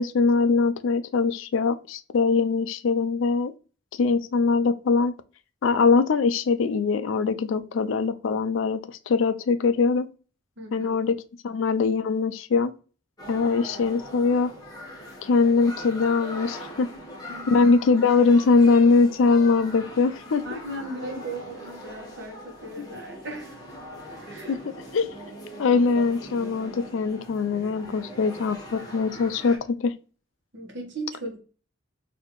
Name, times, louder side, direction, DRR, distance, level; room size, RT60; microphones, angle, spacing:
voice 1, 0.0-3.5 4.0-5.1 5.6-10.1 10.7-11.1 11.4-12.7 13.3-14.5 15.2-16.9 17.5-20.6 22.8-22.9 24.5-24.6 24.9-25.1 25.6-29.9, left 4 dB, 75° left, 0.4 m, -22 dB
voice 2, 10.6-10.9 17.3-17.5 20.4-23.6 24.1-24.6 25.0-25.1 30.5-31.4, right 2 dB, 60° right, 1.1 m, -37 dB
sound 1, 13.2-29.6, equal, 20° left, 0.9 m, -41 dB
4.2 x 2.7 x 3.0 m
head